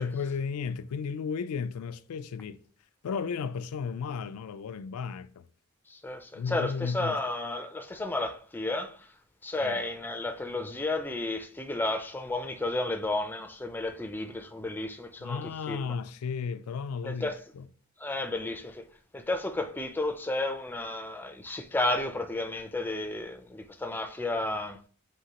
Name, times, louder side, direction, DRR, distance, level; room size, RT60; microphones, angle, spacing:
voice 1, 0.0-2.6 3.0-5.5 6.3-7.2 9.6-9.8 15.2-17.7, left 6 dB, 90° left, 0.3 m, -34 dB
voice 2, 5.9-9.1 9.4-15.4 15.7-15.8 17.0-17.4 18.0-18.9 19.1-24.8, left 2 dB, 10° left, 0.3 m, -32 dB
6.0 x 2.8 x 2.9 m
head